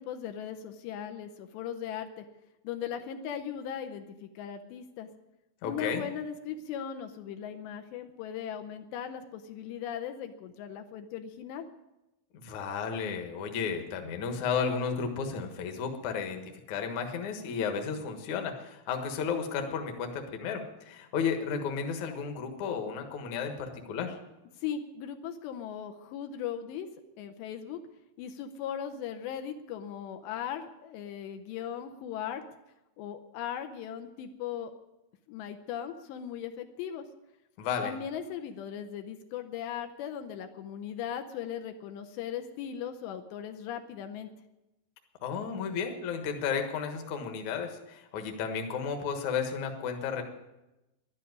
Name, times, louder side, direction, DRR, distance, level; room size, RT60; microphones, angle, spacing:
voice 1, 0.0-2.2 2.6-5.1 5.6-11.7 24.6-26.9 27.2-27.8 28.2-32.4 33.0-34.7 35.3-37.1 37.8-44.3, left 8 dB, 80° left, 6 dB, 2.9 m, -38 dB
voice 2, 5.6-6.0 12.3-24.2 37.6-37.9 45.2-50.2, left 6 dB, 60° left, 5 dB, 2.1 m, -33 dB
11.5 x 11.0 x 9.6 m, 0.97 s
omnidirectional pair, 5.2 m